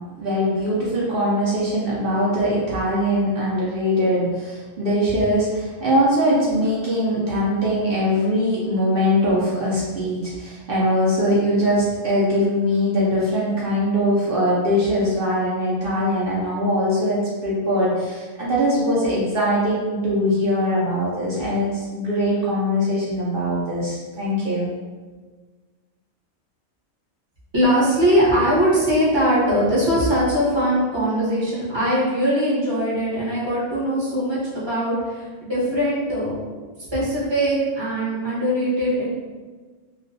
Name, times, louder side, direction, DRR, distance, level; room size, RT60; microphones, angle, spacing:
voice 1, 0.1-24.7, equal, 60° right, -7 dB, 0.6 m, -21 dB
voice 2, 27.5-36.4 36.9-39.1, equal, 25° right, -9 dB, 0.7 m, -21 dB
2.4 x 2.2 x 2.6 m, 1.4 s
omnidirectional pair, 1.4 m